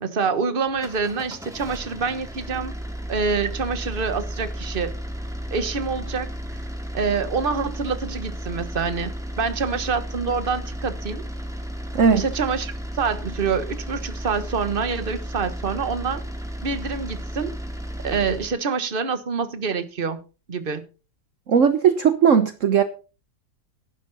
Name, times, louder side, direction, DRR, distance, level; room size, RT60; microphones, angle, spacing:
voice 1, 0.0-2.7 3.1-4.9 5.5-6.3 6.9-11.2 12.1-16.2 16.6-17.6 18.0-20.2 20.5-20.8, right 5 dB, 35° right, 1.4 m, -26 dB
sound 1, 0.7-18.6, equal, ahead, 2.6 m, -33 dB
voice 2, 11.9-12.2 21.5-22.8, right 7 dB, 60° right, 1.3 m, -17 dB
14.0 x 11.5 x 4.1 m
omnidirectional pair, 1.6 m